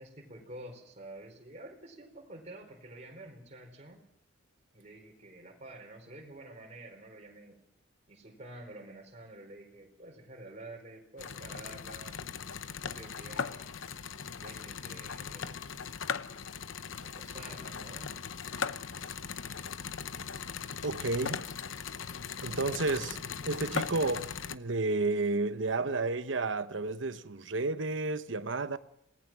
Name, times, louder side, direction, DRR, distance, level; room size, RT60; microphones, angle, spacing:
voice 1, 0.0-4.0 4.7-7.6 8.1-12.2 12.8-13.6 14.4-15.6 17.0-18.1, right 1 dB, 35° right, 4.6 m, -49 dB
sound 1, 11.2-24.6, left 6 dB, 75° left, 0.8 m, -39 dB
voice 2, 20.8-21.4 22.4-28.8, right 3 dB, 65° right, 1.0 m, -31 dB
27.5 x 19.0 x 6.2 m
head